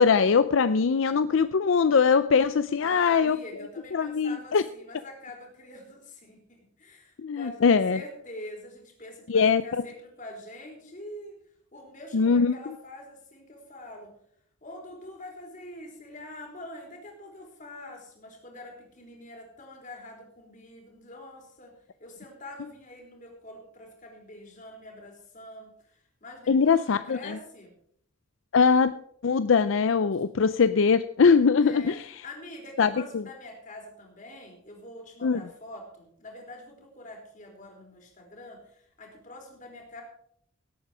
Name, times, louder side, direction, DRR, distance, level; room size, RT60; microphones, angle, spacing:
voice 1, 0.0-3.4 3.9-4.6 7.2-8.0 9.3-9.6 12.1-12.5 26.5-27.3 28.5-28.9 29.2-32.0 32.8-33.2 35.2-35.4, left 5 dB, 75° left, 13 dB, 0.5 m, -21 dB
voice 2, 2.8-11.4 11.7-14.1 14.6-21.7 22.0-27.7 31.6-40.0, left 1 dB, 40° left, 1 dB, 3.8 m, -45 dB
17.5 x 8.3 x 5.0 m, 0.65 s
head